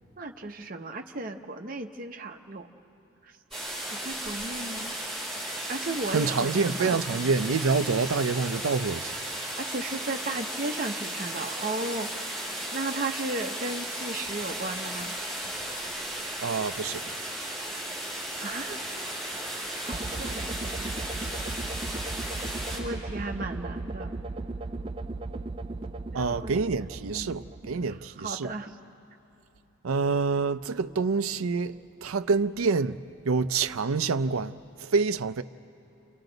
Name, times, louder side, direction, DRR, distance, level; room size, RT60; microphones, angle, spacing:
voice 1, 0.2-2.7 3.2-3.3 3.9-5.0 5.7-7.0 9.6-12.2 12.7-15.1 17.6-17.7 18.4-18.8 19.7-21.4 22.7-24.2 26.1-27.4 27.9-28.8, right 2 dB, 40° right, 0.9 m, -35 dB
sound 1, 3.5-22.8, right 1 dB, ahead, 5.7 m, -35 dB
voice 2, 6.1-9.1 16.4-17.0 26.1-28.5 29.8-31.7 32.0-33.0 33.3-34.6 34.8-35.4, right 4 dB, 80° right, 0.5 m, -27 dB
sound 2, 19.9-28.1, right 2 dB, 25° right, 0.4 m, -36 dB
29.5 x 28.0 x 4.0 m
head